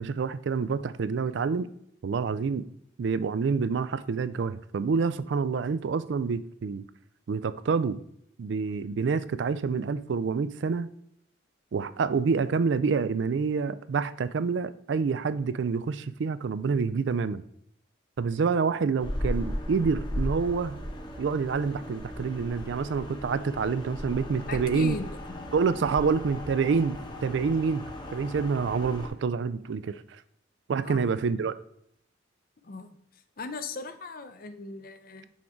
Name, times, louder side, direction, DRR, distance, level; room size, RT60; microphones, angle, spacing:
voice 1, 0.0-1.7 2.0-2.7 3.0-6.8 7.3-8.0 8.4-10.9 11.7-17.4 18.2-20.8 21.2-25.0 25.5-27.8 28.1-30.0 30.7-31.5, right 5 dB, 70° right, 0.4 m, -27 dB
sound 1, 19.0-29.1, equal, 25° left, 0.9 m, -36 dB
voice 2, 24.5-25.5 26.0-26.1 30.8-31.1 32.6-33.0 33.4-35.3, left 3 dB, 50° left, 0.6 m, -38 dB
6.3 x 4.5 x 3.6 m
head